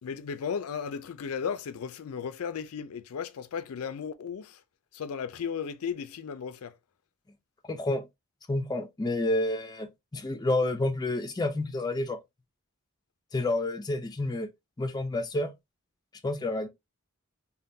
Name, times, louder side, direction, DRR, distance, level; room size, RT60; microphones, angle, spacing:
voice 1, 0.0-4.6 4.9-6.7, left 6 dB, 90° left, 0.4 m, -35 dB
voice 2, 7.7-8.0 8.5-12.2 13.3-14.5 14.8-15.5 16.2-16.7, left 2 dB, 20° left, 0.4 m, -29 dB
3.5 x 2.2 x 2.7 m
head